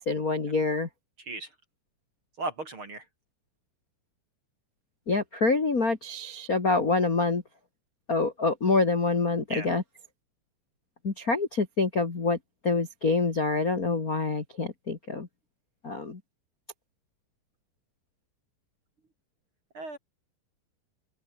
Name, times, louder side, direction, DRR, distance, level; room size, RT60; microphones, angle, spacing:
voice 1, 0.0-0.9 5.1-7.4 8.1-9.8 11.0-12.4 12.6-15.3 15.8-16.2, left 3 dB, 35° left, 1.5 m, -26 dB
voice 2, 2.4-3.0 9.5-9.7 19.7-20.0, right 2 dB, 35° right, 3.1 m, -35 dB
open air
omnidirectional pair, 5.3 m